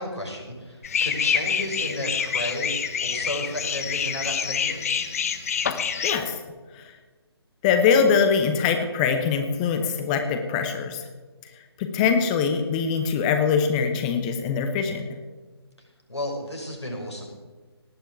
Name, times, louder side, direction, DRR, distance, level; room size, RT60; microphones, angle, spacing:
voice 1, 0.0-2.7 3.0-4.8 16.1-17.2, left 1 dB, 85° left, 0 dB, 5.7 m, -33 dB
sound 1, 0.8-6.2, left 7 dB, 35° left, 1.1 m, -27 dB
voice 2, 5.8-6.3 6.7-6.8 7.6-11.0 11.8-15.1, left 6 dB, 15° left, 6 dB, 0.9 m, -23 dB
18.5 x 6.9 x 9.1 m, 1.3 s
figure-of-eight pair, 145°, 14 cm